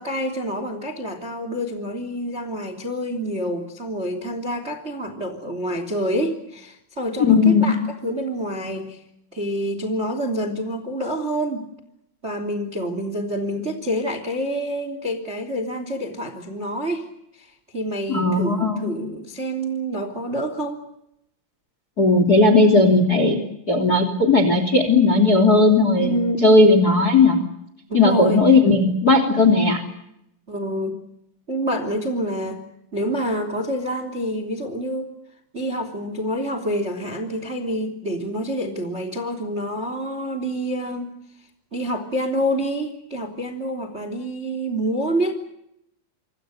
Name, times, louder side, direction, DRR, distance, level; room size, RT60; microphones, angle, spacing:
voice 1, 0.0-9.0 9.3-11.7 12.2-17.1 17.4-17.5 17.7-20.8 26.0-26.5 27.9-28.6 30.5-31.0 31.5-32.6 32.9-35.1 35.5-41.1 41.7-45.3, equal, 20° right, 9 dB, 2.4 m, -27 dB
voice 2, 7.2-7.7 18.1-18.9 22.0-23.4 23.7-26.1 26.4-27.4 27.9-29.8, left 3 dB, 25° left, 9 dB, 2.8 m, -16 dB
27.5 x 26.5 x 6.6 m, 0.80 s
omnidirectional pair, 5.8 m